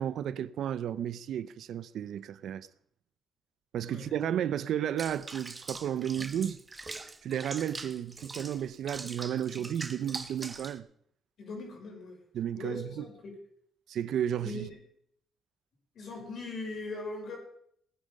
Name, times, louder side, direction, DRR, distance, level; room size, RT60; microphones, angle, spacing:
voice 1, 0.0-2.7 3.7-6.6 7.2-10.9 12.3-13.1 13.9-14.7, right 10 dB, 70° right, 0.6 m, -33 dB
Water / Bathtub (filling or washing), 5.0-10.8, right 3 dB, 25° right, 1.3 m, -42 dB
voice 2, 11.4-12.2 12.5-13.3 14.4-14.7 15.9-17.4, left 3 dB, 60° left, 5.9 m, -40 dB
19.0 x 9.7 x 5.3 m
cardioid pair, 90°, 0 cm